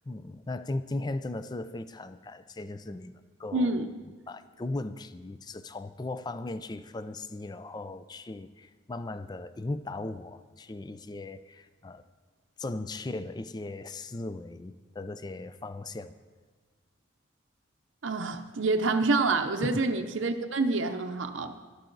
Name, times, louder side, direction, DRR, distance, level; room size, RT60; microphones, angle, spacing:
voice 1, 0.1-3.7 4.3-12.0 12.6-16.2 19.6-19.8, left 2 dB, 20° left, 12 dB, 0.4 m, -37 dB
voice 2, 3.5-3.9 18.0-21.6, right 3 dB, 80° right, 5 dB, 0.7 m, -27 dB
14.0 x 12.5 x 4.0 m, 1.4 s
head